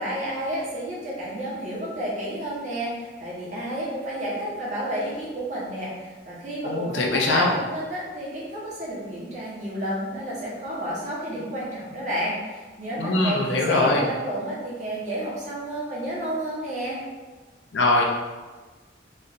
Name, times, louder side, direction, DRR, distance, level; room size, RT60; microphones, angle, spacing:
voice 1, 0.0-17.0, right 1 dB, 40° right, -6 dB, 1.1 m, -31 dB
voice 2, 6.6-7.5 13.0-14.0 17.7-18.0, left 2 dB, 85° left, -1 dB, 0.7 m, -22 dB
3.2 x 2.6 x 4.0 m, 1.3 s
head